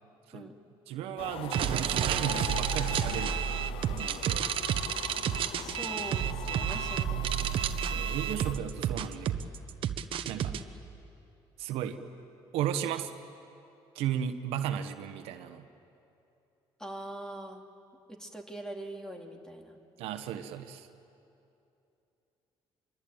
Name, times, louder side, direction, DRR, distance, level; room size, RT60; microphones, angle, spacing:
voice 1, 0.9-3.4 3.9-4.5 7.9-9.4 10.3-10.5 11.6-12.0 12.5-13.1 13.9-15.7 20.0-20.9, right 10 dB, 90° right, 8 dB, 1.3 m, -35 dB
sound 1, 1.2-8.5, left 11 dB, 70° left, 0.7 m, -41 dB
sound 2, 1.5-10.6, right 9 dB, 65° right, 1.1 m, -31 dB
voice 2, 5.5-7.6 10.5-10.7 16.8-17.6 18.1-19.8, right 1 dB, 5° left, 2 dB, 2.8 m, -43 dB
25.5 x 22.5 x 8.9 m, 2.8 s
cardioid pair, 100°, 10 cm